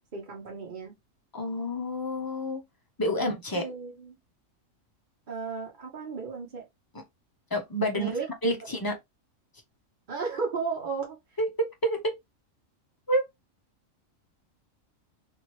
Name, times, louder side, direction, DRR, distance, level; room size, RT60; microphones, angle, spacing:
voice 1, 0.1-0.9 3.1-3.3 3.5-4.1 5.3-6.6 7.9-8.3 8.7-8.8 10.1-11.2, right 5 dB, 45° right, 0.9 m, -34 dB
voice 2, 1.3-2.6 3.0-3.6 7.5-8.1 8.4-9.0 11.4-12.0 13.1-13.3, equal, 35° left, 0.3 m, -28 dB
3.0 x 2.7 x 3.0 m
omnidirectional pair, 1.4 m